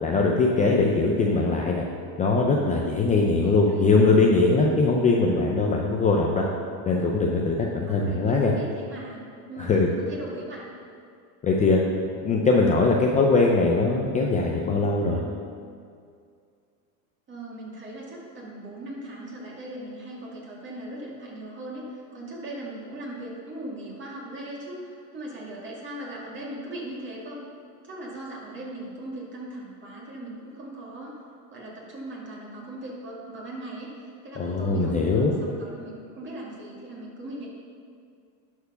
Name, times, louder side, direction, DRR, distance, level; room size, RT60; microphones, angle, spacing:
voice 1, 0.0-1.8 2.2-6.5 6.9-8.5 9.6-9.9 11.4-11.8 12.2-15.2 34.4-35.3, left 3 dB, 15° left, -1 dB, 0.4 m, -21 dB
voice 2, 3.4-3.9 7.8-9.2 9.5-10.7 17.3-27.4 27.8-31.2 31.5-37.5, right 1 dB, 25° right, -4 dB, 2.4 m, -39 dB
11.5 x 4.6 x 5.7 m, 2.3 s
supercardioid pair, 130°, 49 cm